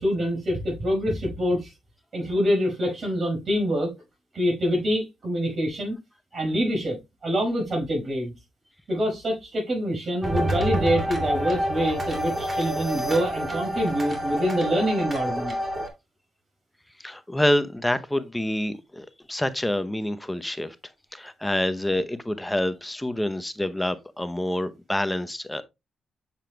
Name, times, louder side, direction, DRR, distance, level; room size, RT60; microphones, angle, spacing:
voice 1, 0.0-1.7 2.1-3.9 4.3-6.0 6.3-8.3 8.9-15.5, equal, 50° right, 5.1 m, -25 dB
sound 1, 10.2-15.9, equal, 35° right, 2.6 m, -28 dB
voice 2, 17.0-20.8 21.1-25.6, left 1 dB, 10° left, 0.7 m, -27 dB
7.4 x 6.8 x 2.3 m
cardioid pair, 70°, 0 cm